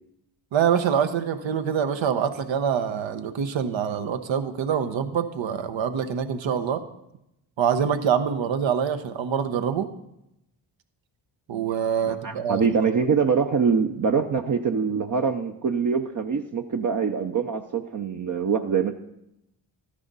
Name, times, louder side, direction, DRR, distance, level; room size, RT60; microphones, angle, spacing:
voice 1, 0.5-6.8 7.6-9.9 11.5-12.7, right 8 dB, 75° right, 9 dB, 1.0 m, -25 dB
voice 2, 12.1-18.9, right 6 dB, 40° right, 3 dB, 0.7 m, -24 dB
13.0 x 9.9 x 4.0 m, 0.83 s
cardioid pair, 60°, 47 cm